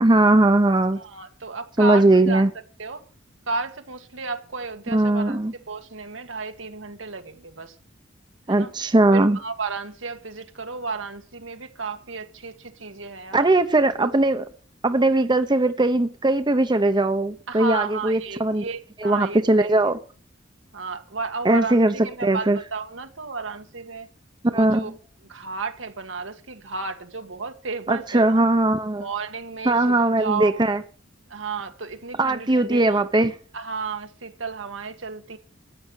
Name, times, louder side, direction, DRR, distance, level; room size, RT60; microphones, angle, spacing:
voice 1, 0.0-1.0 1.8-2.5 4.9-5.5 8.5-9.4 13.3-14.4 14.8-18.6 19.0-20.0 21.4-21.9 22.2-22.6 24.4-24.9 27.9-29.1 29.7-30.8 32.2-33.3, right 2 dB, 25° right, 0.8 m, -19 dB
voice 2, 1.0-2.4 2.8-3.0 3.5-5.4 5.7-7.7 8.5-8.7 9.1-13.5 14.0-14.1 17.5-19.9 20.7-24.1 24.5-24.9 25.3-28.4 29.0-30.6 31.3-33.0 33.5-35.4, right 4 dB, 85° right, 1.7 m, -33 dB
14.0 x 9.3 x 6.3 m
head